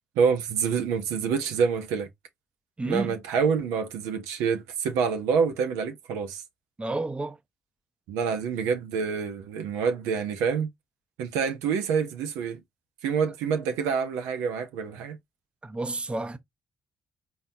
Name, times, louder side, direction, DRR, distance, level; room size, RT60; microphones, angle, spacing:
voice 1, 0.2-2.1 2.8-6.4 8.1-10.7 11.2-12.6 13.0-15.2, right 6 dB, 85° right, 0.8 m, -27 dB
voice 2, 2.8-3.2 6.8-7.4 15.6-16.4, right 2 dB, 20° right, 0.7 m, -30 dB
4.0 x 3.9 x 2.8 m
supercardioid pair, 55°, 5 cm